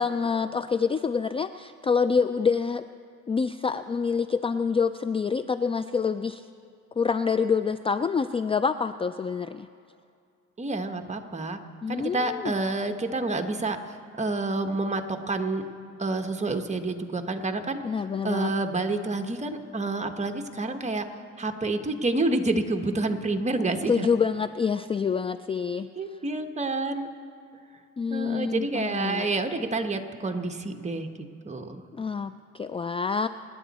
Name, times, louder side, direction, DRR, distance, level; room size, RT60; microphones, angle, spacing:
voice 1, 0.0-2.9 3.3-6.5 7.0-9.7 11.8-12.5 17.8-18.5 23.9-25.9 28.0-29.3 32.0-33.3, left 5 dB, 20° left, 12 dB, 0.3 m, -26 dB
voice 2, 10.6-11.6 11.9-15.6 16.0-17.8 18.2-21.0 21.4-24.1 26.0-27.1 28.1-31.1 31.4-31.8, right 2 dB, 25° right, 6 dB, 1.2 m, -28 dB
25.5 x 10.5 x 4.2 m, 2.4 s
cardioid pair, 90°, 30 cm